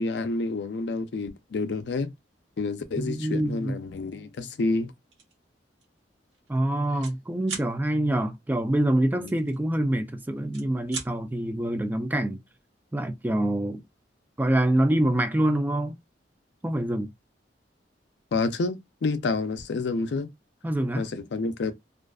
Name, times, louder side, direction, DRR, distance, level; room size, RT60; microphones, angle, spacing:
voice 1, 0.0-2.1 2.6-4.9 9.2-9.3 18.3-20.3 21.0-21.7, left 3 dB, 70° left, 0.4 m, -29 dB
voice 2, 3.0-3.7 6.5-12.4 12.9-13.8 14.4-15.9 16.6-17.1 20.6-21.1, right 1 dB, 10° right, 0.3 m, -25 dB
sound 1, 5.1-5.4 5.8-6.0 6.2-7.2 7.4-7.7 9.3-10.1 10.4-11.1, right 5 dB, 80° right, 1.2 m, -38 dB
2.4 x 2.3 x 2.3 m
head